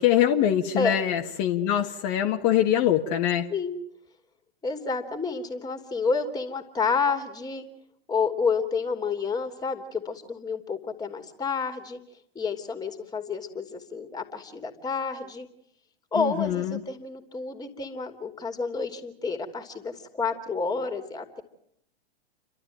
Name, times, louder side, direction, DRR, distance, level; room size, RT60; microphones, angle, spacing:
voice 1, 0.0-3.5 16.2-16.8, left 11 dB, 40° left, 3 dB, 1.7 m, -23 dB
voice 2, 4.6-7.7 8.1-12.0 12.3-15.5 16.1-21.4, left 4 dB, 10° left, 7 dB, 2.9 m, -29 dB
29.5 x 12.5 x 9.2 m, 0.75 s
hypercardioid pair, 105°, 32 cm